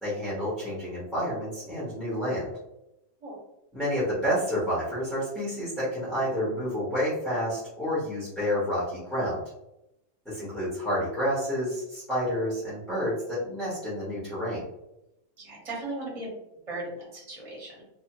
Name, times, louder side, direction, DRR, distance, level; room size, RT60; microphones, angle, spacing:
voice 1, 0.0-2.5 3.7-9.4 10.2-14.6, equal, ahead, -9 dB, 0.7 m, -29 dB
voice 2, 15.4-16.3 16.7-17.7, right 2 dB, 25° right, -5 dB, 1.0 m, -37 dB
2.7 x 2.2 x 2.9 m, 0.86 s
omnidirectional pair, 1.7 m